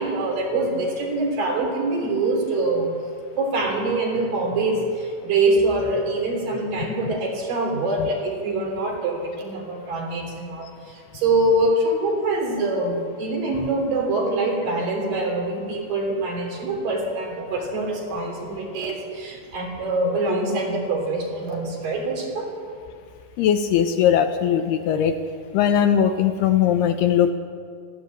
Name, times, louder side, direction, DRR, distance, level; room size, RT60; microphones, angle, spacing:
voice 1, 0.0-2.9 3.4-22.5, right 2 dB, 50° right, 1 dB, 4.7 m, -24 dB
voice 2, 23.4-25.2 25.5-27.3, left 9 dB, 80° left, 7 dB, 2.6 m, -19 dB
22.0 x 15.0 x 8.6 m, 2.3 s
omnidirectional pair, 5.1 m